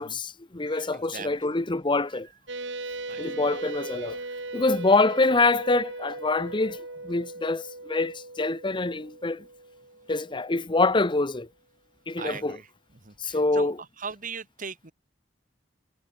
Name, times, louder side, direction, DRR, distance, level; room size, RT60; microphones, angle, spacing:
voice 1, 0.0-2.3 3.2-4.2 4.5-9.4 10.1-11.5 12.1-12.6 13.2-13.8, left 3 dB, 25° left, 0.9 m, -25 dB
voice 2, 0.7-1.4 3.1-3.2 4.2-4.5 12.2-12.7 13.0-13.7 14.0-14.9, right 5 dB, 45° right, 2.1 m, -39 dB
sound 1, 2.5-10.5, right 2 dB, 65° right, 5.7 m, -38 dB
head